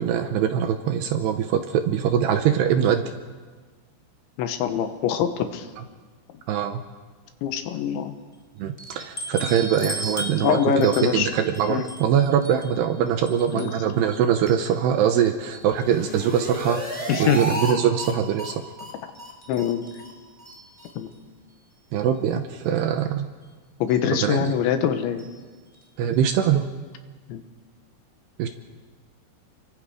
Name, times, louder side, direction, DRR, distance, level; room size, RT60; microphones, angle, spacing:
voice 1, 0.0-3.0 6.5-6.8 8.6-18.6 21.9-23.3 24.1-24.5 26.0-26.7 28.4-28.5, right 9 dB, 75° right, 7 dB, 2.6 m, -23 dB
voice 2, 4.4-5.7 6.3-6.4 7.4-8.2 10.4-11.3 11.7-11.9 13.5-13.7 17.1-17.4 19.5-19.9 21.0-21.1 23.8-25.3 27.3-27.4, left 8 dB, 80° left, 8 dB, 3.4 m, -24 dB
sound 1, 8.8-15.1 15.5-16.5 16.9-17.5 18.2-18.3 18.6-18.7 19.1-21.1 22.1-22.2 22.6-22.7 23.9-24.1 25.2-25.4 25.7-25.8 26.1-26.2, equal, 20° left, 1.8 m, -39 dB
sound 2, 15.7-17.7 18.0-18.1 18.4-18.5 18.8-18.9 19.2-19.3 19.6-19.7 20.0-20.1 20.4-20.5 20.8-20.9, equal, 10° right, 3.2 m, -32 dB
29.5 x 23.5 x 5.0 m, 1.4 s
omnidirectional pair, 5.5 m